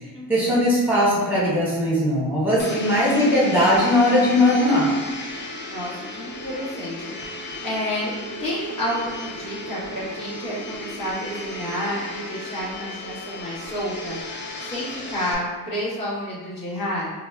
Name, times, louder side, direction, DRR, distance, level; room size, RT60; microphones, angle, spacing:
voice 1, 0.3-4.9, left 1 dB, 5° right, -8 dB, 1.0 m, -19 dB
Domestic sounds home sounds, 2.6-15.3, left 1 dB, 35° left, 0.4 m, -35 dB
voice 2, 5.7-8.1 8.4-14.2 14.6-17.1, left 1 dB, 75° left, -8 dB, 1.3 m, -30 dB
3.6 x 2.1 x 2.3 m, 1.4 s
cardioid pair, 105°, 35 cm